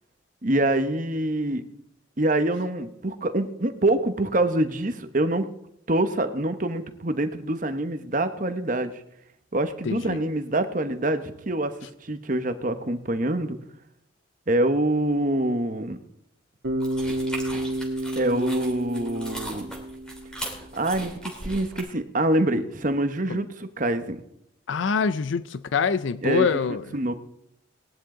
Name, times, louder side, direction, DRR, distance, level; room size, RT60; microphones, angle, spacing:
voice 1, 0.4-1.6 2.2-5.5 5.9-8.9 9.5-11.7 12.0-13.6 14.5-16.0 18.2-19.7 20.7-24.2 26.2-26.5 26.9-27.2, right 1 dB, 40° right, 8 dB, 1.1 m, -25 dB
voice 2, 9.8-10.2 23.3-23.4 24.7-26.9, left 5 dB, 70° left, 14 dB, 0.4 m, -25 dB
Bass guitar, 16.6-20.7, right 1 dB, 70° right, 1.5 m, -31 dB
sound 1, 16.8-21.8, right 1 dB, 5° left, 2.7 m, -38 dB
18.5 x 11.0 x 3.9 m, 0.77 s
head